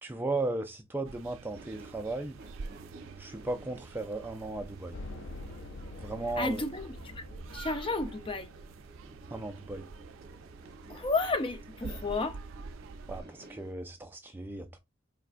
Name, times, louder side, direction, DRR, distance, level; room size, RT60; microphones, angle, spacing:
voice 1, 0.0-2.4 3.2-5.0 6.0-6.6 9.3-9.9 13.1-14.8, right 2 dB, 10° right, 0.3 m, -36 dB
sound 1, 1.0-13.2, right 4 dB, 90° right, 0.4 m, -47 dB
sound 2, 1.5-13.7, right 2 dB, 55° right, 0.9 m, -54 dB
sound 3, 4.9-9.2, left 3 dB, 60° left, 0.4 m, -46 dB
voice 2, 6.4-7.2 7.5-8.5 10.9-12.4, left 3 dB, 25° left, 0.7 m, -32 dB
4.4 x 3.3 x 2.4 m
head